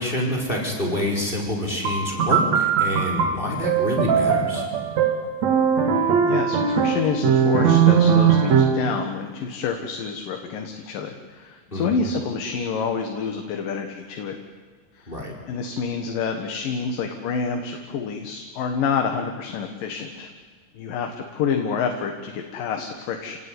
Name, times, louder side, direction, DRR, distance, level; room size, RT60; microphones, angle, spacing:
voice 1, 0.0-4.7 11.7-11.9 15.1-15.4, left 1 dB, 15° left, 1 dB, 4.8 m, -27 dB
sound 1, 1.8-8.9, right 7 dB, 60° right, 2.9 m, -20 dB
voice 2, 5.9-14.3 15.0-15.2 15.5-20.3 20.7-23.4, left 6 dB, 80° left, 4 dB, 3.3 m, -28 dB
28.5 x 18.5 x 9.6 m, 1.5 s
omnidirectional pair, 3.9 m